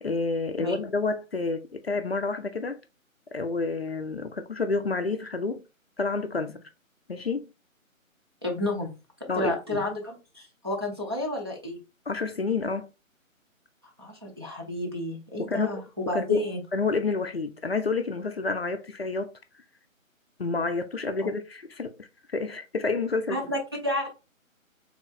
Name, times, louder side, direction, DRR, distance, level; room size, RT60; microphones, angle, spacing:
voice 1, 0.0-2.8 3.3-5.6 6.0-6.6 7.1-7.5 9.3-9.9 12.1-12.9 15.4-15.8 16.1-19.3 20.4-23.4, left 4 dB, 50° left, 0.5 m, -29 dB
voice 2, 8.4-8.9 9.3-11.8 14.0-15.8 16.1-16.6 23.3-24.1, left 1 dB, 20° right, 0.6 m, -30 dB
3.6 x 3.0 x 3.9 m
figure-of-eight pair, 145°, 41 cm